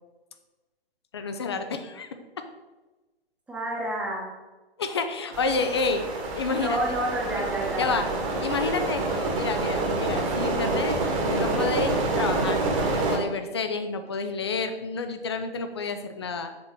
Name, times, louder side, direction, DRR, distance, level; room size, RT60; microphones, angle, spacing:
voice 1, 1.1-2.1 2.4-2.5 4.8-6.0 6.3-6.8 7.4-7.5 7.8-8.0 8.4-12.6 12.9-16.5, left 4 dB, 25° left, 8 dB, 0.5 m, -29 dB
voice 2, 3.5-4.3 6.5-8.1 8.6-8.7, right 1 dB, 5° right, -3 dB, 0.9 m, -30 dB
sound 1, 5.3-13.2, right 2 dB, 30° right, 1.3 m, -27 dB
6.6 x 3.9 x 6.0 m, 1.2 s
figure-of-eight pair, 130°, 31 cm